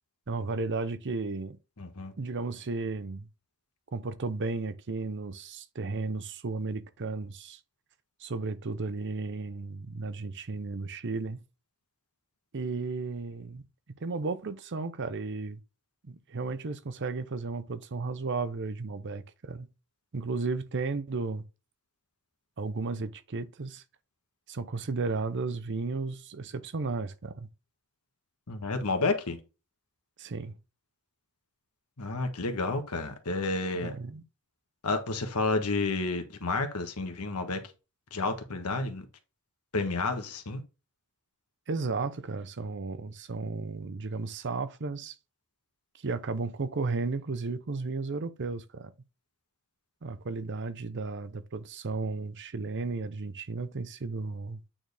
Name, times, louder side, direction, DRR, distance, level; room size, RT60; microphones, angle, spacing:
voice 1, 0.3-1.6 2.2-3.3 3.9-7.6 8.2-11.4 12.5-15.6 16.0-19.7 20.1-21.5 22.6-23.8 24.5-27.5 30.2-30.6 33.7-34.2 41.7-45.2 46.0-48.9 50.0-54.6, right 3 dB, 55° right, 0.7 m, -34 dB
voice 2, 1.8-2.1 28.5-29.4 32.0-33.9 34.8-37.6 38.1-39.0 39.7-40.6, left 3 dB, 85° left, 1.3 m, -30 dB
8.8 x 4.4 x 3.4 m
head